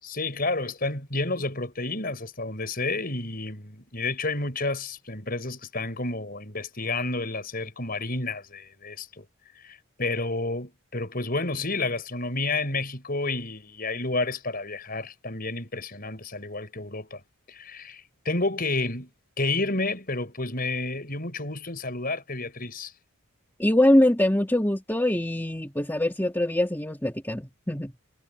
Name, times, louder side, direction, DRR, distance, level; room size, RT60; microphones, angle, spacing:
voice 1, 0.0-9.2 9.6-17.2 17.5-19.1 19.4-22.9, left 2 dB, 40° left, 6.2 m, -30 dB
voice 2, 23.6-27.9, left 1 dB, 10° left, 2.1 m, -23 dB
head